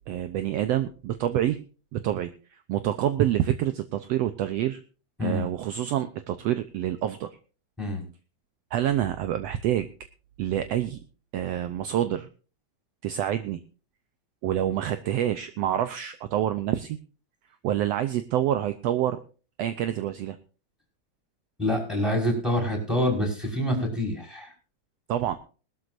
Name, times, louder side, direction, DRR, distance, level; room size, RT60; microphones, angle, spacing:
voice 1, 0.1-1.6 1.9-2.3 2.7-4.8 5.2-7.3 8.7-9.9 10.4-11.0 11.3-12.3 13.0-13.6 14.4-17.0 17.6-19.2 19.6-20.4 25.1-25.4, right 11 dB, 75° right, 10 dB, 1.7 m, -27 dB
voice 2, 21.6-24.5, left 1 dB, ahead, 2 dB, 5.3 m, -26 dB
20.5 x 13.0 x 2.6 m, 0.36 s
omnidirectional pair, 3.4 m